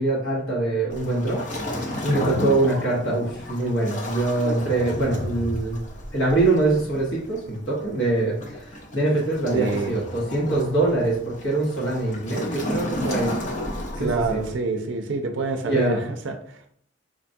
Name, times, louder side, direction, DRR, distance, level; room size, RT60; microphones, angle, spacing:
voice 1, 0.0-1.4 2.0-5.8 6.1-8.6 8.9-13.3 14.0-14.4 15.6-16.0, right 2 dB, 70° left, -4 dB, 1.0 m, -23 dB
Waves surf, 0.9-14.6, left 1 dB, 40° left, 0.6 m, -33 dB
voice 2, 9.5-10.0 14.0-16.7, right 3 dB, 70° right, 5 dB, 0.4 m, -27 dB
5.0 x 2.2 x 2.6 m, 0.62 s
head